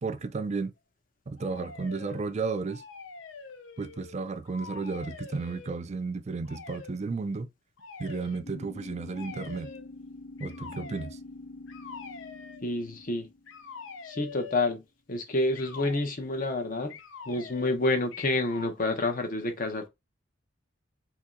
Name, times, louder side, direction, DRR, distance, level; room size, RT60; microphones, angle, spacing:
voice 1, 0.0-0.7 1.3-2.8 3.8-7.5 8.0-9.7 10.4-11.2, right 4 dB, 35° right, 0.4 m, -33 dB
sound 1, 1.4-2.3 2.6-4.1 4.4-5.7 6.4-6.9 7.8-8.4 9.1-9.9 10.4-11.1 11.7-12.6 13.5-14.7 15.5-16.0 16.9-17.8 18.1-18.8, left 5 dB, 85° left, 0.6 m, -45 dB
sound 2, 8.4-14.2, left 2 dB, 70° left, 1.1 m, -46 dB
voice 2, 12.6-13.3 14.0-14.8 15.1-17.0 17.3-19.9, left 2 dB, 45° left, 0.9 m, -28 dB
3.0 x 2.8 x 3.6 m
head